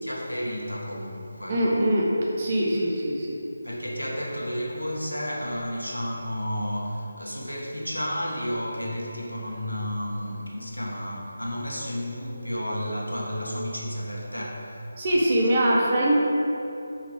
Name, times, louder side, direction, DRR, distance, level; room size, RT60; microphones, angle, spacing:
voice 1, 0.0-1.7 3.6-15.0, equal, 85° left, -2 dB, 1.4 m, -32 dB
voice 2, 1.5-2.1 2.4-3.4 15.0-16.2, right 1 dB, 35° right, -3 dB, 1.0 m, -22 dB
6.2 x 5.7 x 5.0 m, 2.8 s
figure-of-eight pair, 155°, 0 cm